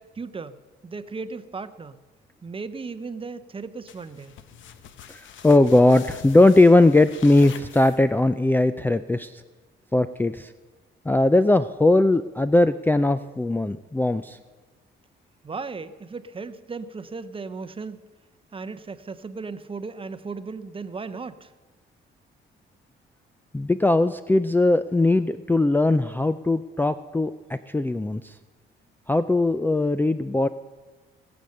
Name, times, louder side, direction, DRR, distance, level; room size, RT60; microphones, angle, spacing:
voice 1, 0.0-2.0 2.4-4.4 15.4-18.0 18.5-21.5, right 4 dB, 25° right, 12 dB, 0.7 m, -36 dB
sound 1, 3.9-8.4, left 8 dB, 75° left, 0.9 m, -45 dB
voice 2, 5.1-9.3 9.9-10.5 11.1-14.4 23.5-28.3 29.1-30.5, left 2 dB, 10° left, 12 dB, 0.4 m, -19 dB
19.5 x 7.0 x 6.6 m, 1.2 s
cardioid pair, 90°, 20 cm